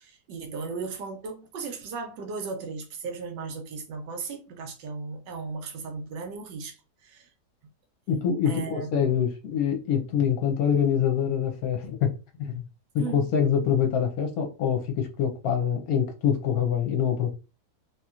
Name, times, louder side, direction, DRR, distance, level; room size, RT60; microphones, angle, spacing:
voice 1, 0.0-6.8 7.0-7.3 8.4-9.0 13.0-13.3, right 4 dB, 90° right, 1.4 m, -36 dB
voice 2, 8.1-12.6 12.9-17.3, left 8 dB, 65° left, 1.1 m, -25 dB
3.0 x 2.9 x 2.4 m
omnidirectional pair, 1.9 m